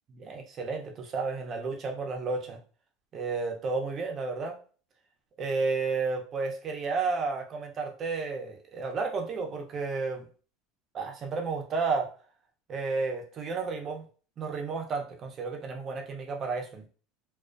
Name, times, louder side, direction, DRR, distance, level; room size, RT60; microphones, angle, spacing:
voice 1, 0.2-2.6 3.1-4.6 5.4-10.3 10.9-12.1 12.7-14.0 14.4-16.9, right 4 dB, 40° right, 3 dB, 0.6 m, -32 dB
2.4 x 2.3 x 2.2 m, 0.38 s
supercardioid pair, 100°, 0 cm